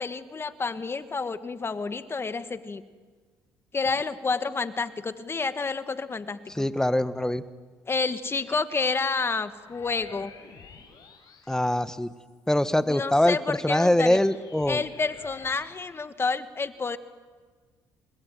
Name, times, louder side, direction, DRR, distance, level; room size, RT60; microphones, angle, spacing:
voice 1, 0.0-2.8 3.7-6.7 7.9-10.3 12.9-14.2 14.7-17.0, left 4 dB, 30° left, 10 dB, 1.8 m, -29 dB
voice 2, 6.6-7.4 11.5-12.1 12.5-14.8, left 1 dB, 5° left, 12 dB, 1.5 m, -23 dB
sound 1, 9.5-12.4 13.0-15.8, left 6 dB, 55° left, 5.7 m, -50 dB
28.5 x 20.0 x 9.5 m, 1.5 s
supercardioid pair, 70°, 8 cm